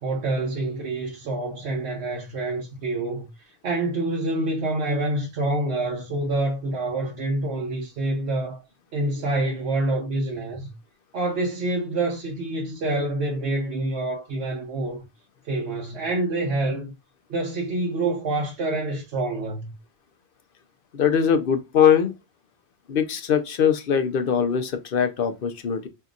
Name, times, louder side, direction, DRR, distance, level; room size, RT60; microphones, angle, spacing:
voice 1, 0.0-8.6 8.9-10.7 11.1-15.0 15.4-16.9 17.3-19.7, right 2 dB, 85° right, 1.1 m, -27 dB
voice 2, 20.9-22.1 22.9-25.9, left 8 dB, 60° left, 0.8 m, -21 dB
5.4 x 2.8 x 2.4 m
omnidirectional pair, 1.1 m